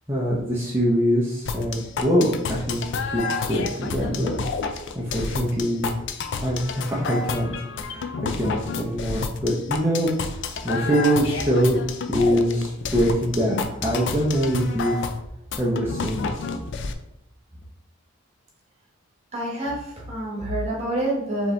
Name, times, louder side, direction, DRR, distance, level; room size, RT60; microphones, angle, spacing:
voice 1, 0.1-2.8 3.1-4.4 4.9-5.9 6.4-7.5 7.8-10.1 10.4-11.8 12.1-15.1 15.6-16.3, equal, 10° right, -8 dB, 0.7 m, -23 dB
sound 1, 1.5-16.9, left 4 dB, 55° left, 0.4 m, -30 dB
voice 2, 19.3-21.5, right 1 dB, 30° right, -3 dB, 1.3 m, -27 dB
4.9 x 2.9 x 3.2 m, 0.85 s
head